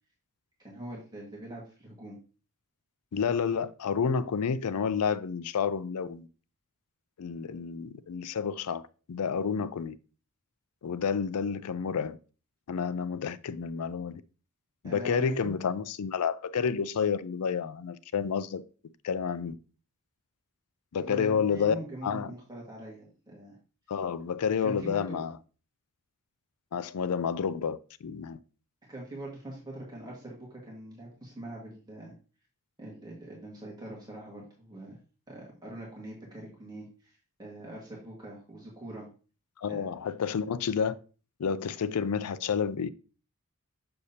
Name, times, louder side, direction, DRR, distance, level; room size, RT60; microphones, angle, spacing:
voice 1, 0.6-2.2 14.8-15.5 21.0-23.6 24.6-25.2 28.9-32.1 32.8-35.0 35.3-39.1 39.7-39.8, right 1 dB, 20° right, 1.7 m, -43 dB
voice 2, 3.1-6.3 7.2-10.0 10.8-12.2 12.7-14.2 14.8-18.6 19.0-19.6 20.9-21.8 22.0-22.3 23.9-25.3 26.7-28.4 39.6-40.9 41.4-42.9, left 6 dB, 85° left, 0.4 m, -30 dB
6.7 x 6.5 x 2.8 m
head